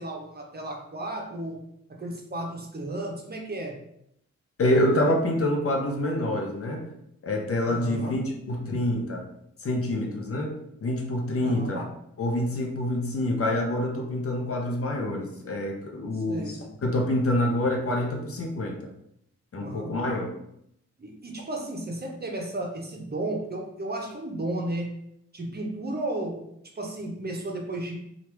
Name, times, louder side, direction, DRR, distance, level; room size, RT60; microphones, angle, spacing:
voice 1, 0.0-1.6 1.9-3.8 7.7-8.2 11.4-11.8 16.1-16.6 19.6-20.0 21.0-24.9 25.3-26.4 26.8-28.0, right 1 dB, 30° right, 1 dB, 0.8 m, -33 dB
voice 2, 4.6-6.8 7.2-9.2 9.6-10.5 10.8-11.8 12.2-16.5 16.8-18.9 19.5-20.3, left 1 dB, 50° left, 1 dB, 0.7 m, -26 dB
2.9 x 2.5 x 3.3 m, 0.76 s
supercardioid pair, 45°, 30 cm